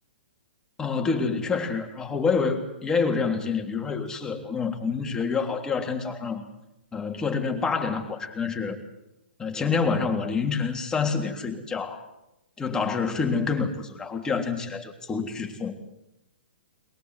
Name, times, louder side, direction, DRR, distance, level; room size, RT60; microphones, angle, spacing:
voice 1, 0.8-6.4 6.9-8.8 9.4-12.0 12.6-15.7, left 5 dB, 10° left, 3 dB, 3.2 m, -27 dB
23.0 x 22.0 x 8.0 m, 0.89 s
figure-of-eight pair, 115°, 6 cm